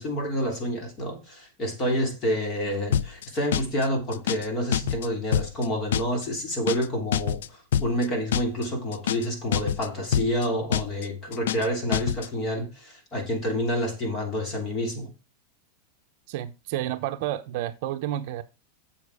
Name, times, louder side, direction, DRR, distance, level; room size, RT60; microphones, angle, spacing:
voice 1, 0.0-7.4 7.8-15.1, equal, 25° left, 3.0 m, -28 dB
sound 1, 2.9-3.3 3.5-3.9 4.1-4.5 4.7-5.1 5.3-5.7 5.9-6.3 6.5-6.9 7.1-7.5 7.7-8.1 8.3-8.7 8.9-9.3 9.5-9.9 10.1-10.5 10.7-11.1 11.3-11.7 11.9-12.3, left 9 dB, 90° left, 0.4 m, -26 dB
voice 2, 16.3-18.4, right 13 dB, 50° right, 0.8 m, -30 dB
7.3 x 7.3 x 4.8 m
supercardioid pair, 160°, 0 cm